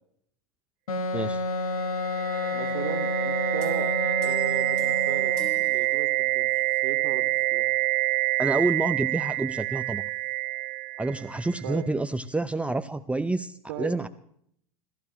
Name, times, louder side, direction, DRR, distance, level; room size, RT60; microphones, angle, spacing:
Wind instrument woodwind instrument, 0.9-5.5, left 2 dB, 75° left, 1.7 m, -30 dB
voice 1, 1.1-1.4 8.4-10.0 11.0-14.1, right 2 dB, 5° right, 11 dB, 0.7 m, -28 dB
sound 1, 1.8-11.6, right 21 dB, 45° right, 1.3 m, -27 dB
voice 2, 2.5-6.5 6.8-7.7 11.6-11.9 13.7-14.1, right 9 dB, 60° right, 7 dB, 2.1 m, -37 dB
sound 2, 3.6-6.6, left 6 dB, 45° left, 4.9 m, -48 dB
27.0 x 14.5 x 3.0 m, 0.66 s
figure-of-eight pair, 90°, 18 cm